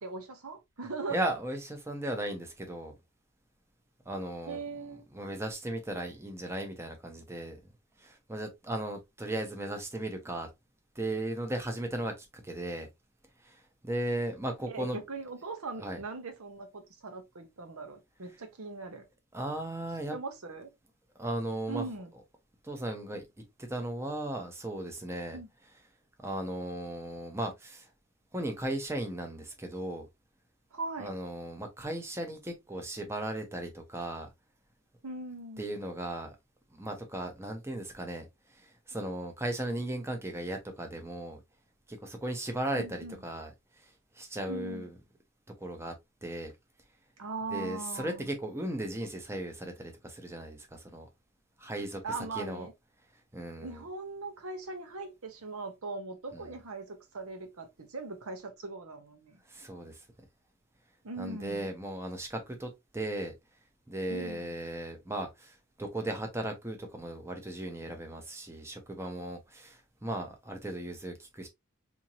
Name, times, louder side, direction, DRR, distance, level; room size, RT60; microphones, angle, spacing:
voice 1, 0.0-1.2 4.5-5.0 14.7-19.1 20.1-20.7 21.7-22.1 25.3-25.5 30.7-31.1 35.0-35.7 42.7-43.2 44.5-44.9 47.2-48.3 52.0-52.7 53.6-59.4 61.0-61.7 64.1-64.5, right 3 dB, 90° right, 1.0 m, -40 dB
voice 2, 1.1-3.0 4.1-4.6 5.1-7.6 8.0-10.5 10.9-12.9 13.4-15.0 15.8-16.0 19.3-20.2 21.2-21.9 22.6-23.3 23.6-25.4 26.2-27.9 28.3-30.1 31.0-34.3 35.6-36.4 36.7-41.4 41.9-45.0 45.6-45.9 46.2-46.5 47.5-51.1 51.6-52.0 52.3-52.7 53.3-53.8 56.3-56.5 59.5-60.1 61.2-63.3 63.9-71.5, right 1 dB, 10° right, 0.7 m, -36 dB
4.4 x 2.8 x 2.7 m
head